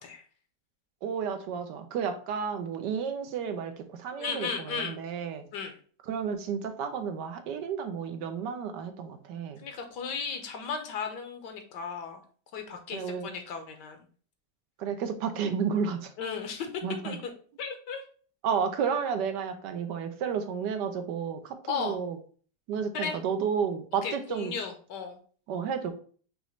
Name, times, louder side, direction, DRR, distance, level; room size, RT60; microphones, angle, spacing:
voice 1, 1.0-5.5 6.1-9.6 12.9-13.4 14.8-16.1 16.8-17.2 18.4-22.2 22.7-24.6 25.5-25.9, right 6 dB, 80° right, 8 dB, 1.3 m, -32 dB
voice 2, 4.2-5.0 5.5-5.7 9.6-12.2 12.5-14.0 16.2-17.2 17.6-18.0 21.7-22.0 22.9-23.2 24.0-25.2, left 6 dB, 80° left, 5 dB, 1.5 m, -35 dB
5.4 x 3.0 x 3.1 m, 0.43 s
omnidirectional pair, 1.8 m